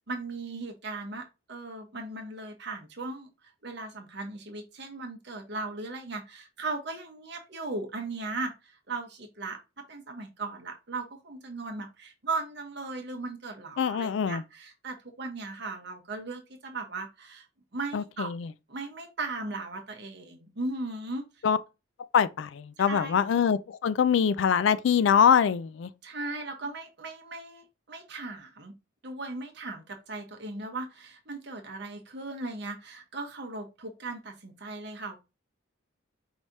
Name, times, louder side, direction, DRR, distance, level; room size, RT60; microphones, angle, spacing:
voice 1, 0.1-1.2 1.5-3.3 3.6-9.6 9.9-17.4 17.7-18.3 18.7-21.2 22.9-23.2 26.0-28.7 29.0-35.2, right 3 dB, 55° right, 1.1 m, -37 dB
voice 2, 13.8-14.4 17.9-18.5 21.4-21.6 22.1-25.9, left 7 dB, 65° left, 0.3 m, -24 dB
4.8 x 3.2 x 2.7 m
head